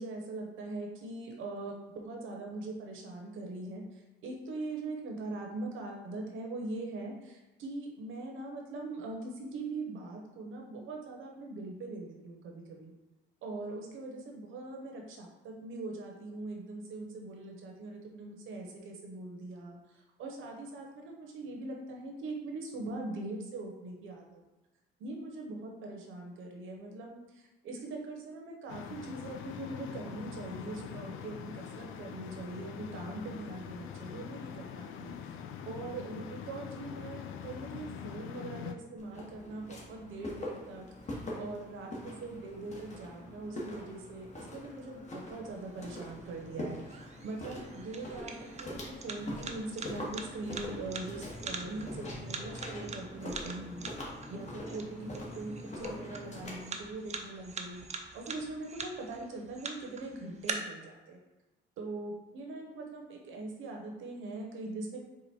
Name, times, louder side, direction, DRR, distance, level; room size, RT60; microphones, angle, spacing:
voice 1, 0.0-12.9 13.4-24.4 25.0-35.4 35.6-53.9 54.3-57.8 58.1-61.2 61.8-65.0, right 2 dB, 80° right, 1 dB, 1.0 m, -42 dB
sound 1, 28.7-38.7, left 8 dB, 85° left, 0.4 m, -43 dB
Walk footsteps, 39.0-56.7, left 1 dB, 35° left, 1.4 m, -43 dB
sound 2, 45.5-60.5, right 5 dB, 35° right, 0.6 m, -45 dB
4.9 x 2.5 x 4.3 m, 1.1 s
cardioid pair, 90°, 20 cm